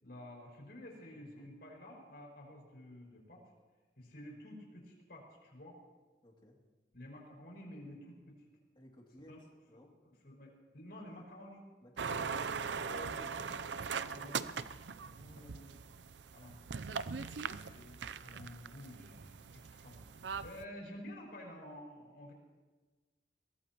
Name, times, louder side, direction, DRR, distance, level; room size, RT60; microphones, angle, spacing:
voice 1, 0.0-3.5 4.0-5.8 6.9-8.5 9.3-9.4 10.0-11.7 12.1-13.6 14.0-14.5 15.2-15.8 16.3-22.3, left 1 dB, 65° left, -1 dB, 5.9 m, -51 dB
voice 2, 1.1-1.5 6.2-6.6 8.8-9.3 9.7-9.9 11.8-12.3 14.1-14.5 15.1-15.7, equal, 30° left, -1 dB, 2.7 m, -59 dB
sound 1, 12.0-20.6, right 6 dB, 85° right, 0.6 m, -41 dB
22.5 x 18.5 x 3.0 m, 1.3 s
head